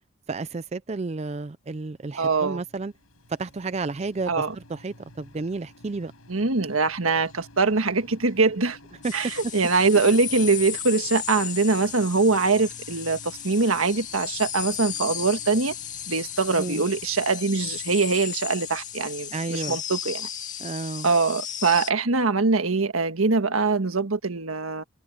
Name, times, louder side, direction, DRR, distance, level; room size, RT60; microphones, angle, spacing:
voice 1, 0.3-2.9 3.3-6.1 9.0-9.1 16.6-16.8 19.3-19.8 20.6-21.1, right 3 dB, 30° right, 0.4 m, -31 dB
sound 1, 1.7-20.7, left 1 dB, 85° left, 7.3 m, -52 dB
voice 2, 2.2-2.6 4.3-4.5 6.3-8.8 9.1-15.7 16.1-20.3 21.0-24.8, right 4 dB, 85° right, 1.5 m, -23 dB
sound 2, 9.0-21.9, left 10 dB, 35° left, 2.4 m, -35 dB
head